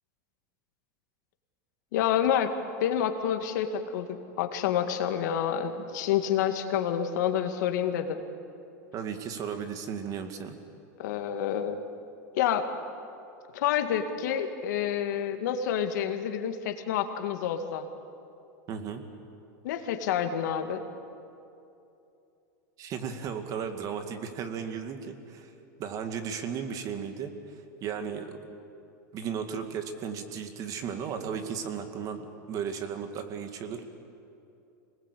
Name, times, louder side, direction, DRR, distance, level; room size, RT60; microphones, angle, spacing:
voice 1, 1.9-2.5 2.8-8.2 11.0-11.8 12.3-12.7 13.5-17.9 19.6-20.8, left 9 dB, 70° left, 6 dB, 2.1 m, -28 dB
voice 2, 8.9-10.6 18.7-19.0 22.8-25.5 25.8-28.5 29.1-32.2 32.5-33.8, right 7 dB, 35° right, 7 dB, 2.2 m, -35 dB
26.5 x 19.5 x 8.5 m, 2.7 s
supercardioid pair, 140°, 10 cm